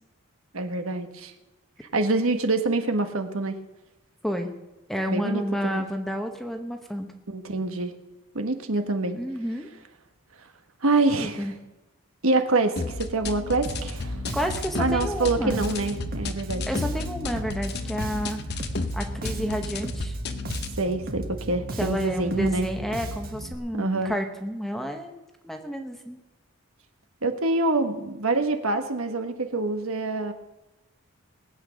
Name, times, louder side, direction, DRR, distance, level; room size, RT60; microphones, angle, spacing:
voice 1, 0.5-1.3 1.9-3.5 5.1-5.8 7.3-7.9 8.3-9.2 10.8-11.5 12.2-14.2 14.8-16.6 20.8-22.7 23.7-24.1 27.2-30.3, right 2 dB, 75° right, 7 dB, 1.4 m, -26 dB
voice 2, 4.9-7.1 9.1-9.7 11.2-11.5 14.3-15.6 16.7-18.6 18.9-20.2 21.8-26.2, equal, ahead, 5 dB, 1.1 m, -30 dB
sound 1, 12.8-20.8, left 2 dB, 50° left, 0.9 m, -33 dB
Bass guitar, 13.7-23.5, right 1 dB, 40° right, 1.5 m, -35 dB
19.5 x 8.8 x 6.4 m, 1.0 s
head